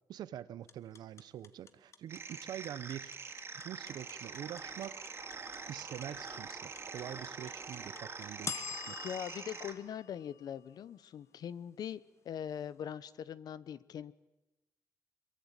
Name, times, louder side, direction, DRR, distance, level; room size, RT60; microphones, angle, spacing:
voice 1, 0.1-5.1 5.7-9.0, right 11 dB, 85° right, 17 dB, 0.9 m, -45 dB
sound 1, 0.7-10.9, left 6 dB, 45° left, 1.5 m, -45 dB
sound 2, 2.1-9.7, right 4 dB, 35° right, 3.4 m, -45 dB
voice 2, 9.0-14.1, left 9 dB, 70° left, 17 dB, 1.1 m, -42 dB
23.0 x 22.5 x 9.0 m, 1.0 s
cardioid pair, 105°, 7 cm